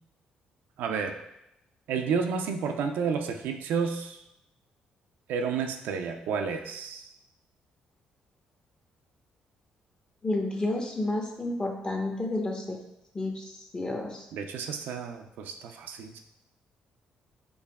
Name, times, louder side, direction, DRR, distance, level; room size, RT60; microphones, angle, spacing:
voice 1, 0.8-1.2 1.9-4.2 5.3-7.1 14.3-16.2, right 6 dB, 75° right, 5 dB, 0.3 m, -31 dB
voice 2, 10.2-12.8 13.1-13.4 13.7-14.2, left 2 dB, 30° left, 2 dB, 0.8 m, -30 dB
4.6 x 2.6 x 2.2 m, 0.84 s
supercardioid pair, 55°, 3 cm